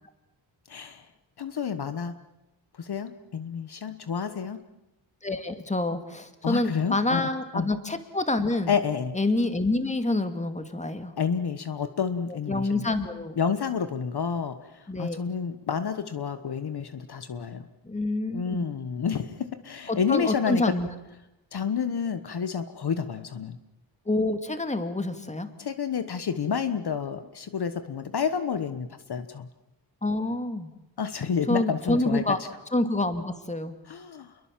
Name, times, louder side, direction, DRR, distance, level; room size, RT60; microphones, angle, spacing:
voice 1, 0.7-1.0 1.4-2.1 2.8-4.6 6.4-7.7 8.7-9.2 11.2-12.9 13.4-17.7 18.3-20.7 21.5-23.6 25.6-29.5 31.0-32.3 33.9-34.3, left 6 dB, 55° left, 10 dB, 1.3 m, -29 dB
voice 2, 5.2-8.8 9.1-11.1 12.3-13.4 14.9-15.2 17.8-18.7 19.9-20.9 24.1-25.5 30.0-30.7 31.5-32.4 32.7-33.8, left 2 dB, 15° left, 8 dB, 2.2 m, -27 dB
29.0 x 22.5 x 7.5 m, 0.96 s
wide cardioid pair, 125°, 46 cm